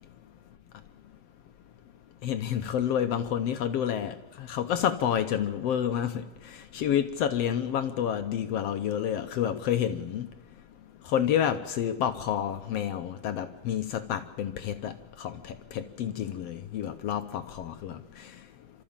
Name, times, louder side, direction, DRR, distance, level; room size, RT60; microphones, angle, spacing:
voice 1, 2.2-10.3 11.1-18.0, left 9 dB, 70° left, 1.6 m, -29 dB
29.0 x 13.5 x 7.3 m
omnidirectional pair, 3.6 m